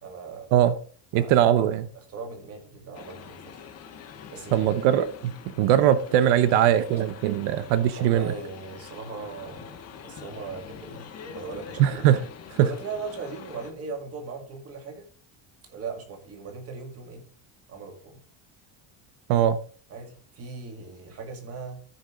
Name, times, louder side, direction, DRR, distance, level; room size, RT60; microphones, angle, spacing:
voice 1, 0.0-0.5 1.1-1.4 1.9-3.6 4.3-4.8 7.9-9.8 10.0-12.1 12.6-15.1 15.7-17.2 17.7-18.2 19.9-21.8, right 4 dB, 30° right, 2.3 m, -38 dB
voice 2, 1.1-1.9 4.5-8.3 11.8-12.2 12.5-12.7 19.3-19.6, right 11 dB, 85° right, 1.0 m, -21 dB
sound 1, 2.9-13.7, left 7 dB, 35° left, 1.3 m, -45 dB
14.5 x 5.4 x 3.7 m
cardioid pair, 180°, 46 cm